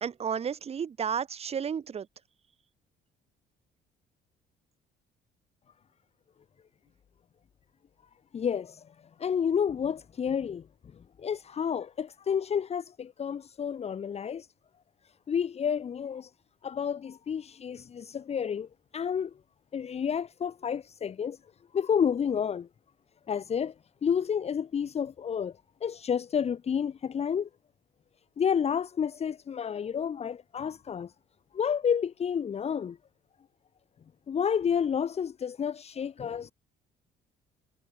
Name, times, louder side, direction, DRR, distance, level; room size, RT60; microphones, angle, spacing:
voice 1, 0.0-2.1, right 7 dB, 35° right, 1.6 m, -32 dB
voice 2, 8.3-8.8 9.2-10.6 11.2-14.5 15.3-16.3 16.6-19.3 19.7-21.4 21.7-22.7 23.3-23.7 24.0-25.5 25.8-27.5 28.4-31.1 31.5-33.0 34.3-36.5, left 7 dB, 40° left, 1.6 m, -30 dB
cardioid pair, 110°, 17 cm